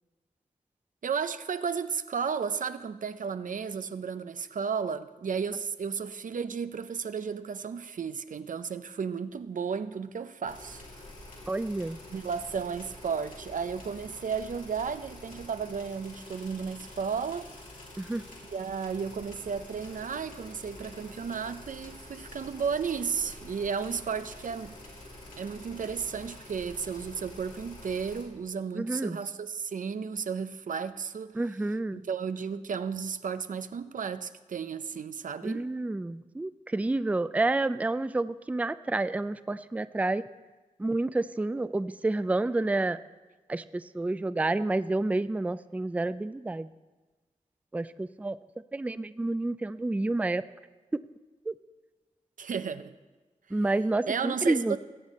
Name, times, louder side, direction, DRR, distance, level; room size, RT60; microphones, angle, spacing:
voice 1, 1.0-10.8 12.1-17.5 18.5-24.7 25.4-31.4 31.9-35.7 52.4-53.0 54.1-54.8, right 6 dB, 80° right, 0.5 m, -33 dB
sound 1, 10.5-28.2, left 1 dB, 90° left, 2.9 m, -47 dB
voice 2, 11.5-12.0 18.0-18.2 28.8-29.2 31.4-32.0 35.4-40.2 40.8-43.0 43.5-46.7 47.7-48.4 48.7-50.4 51.5-51.6 53.5-54.8, right 2 dB, 10° right, 0.3 m, -29 dB
20.0 x 8.2 x 4.2 m
wide cardioid pair, 90°, 13 cm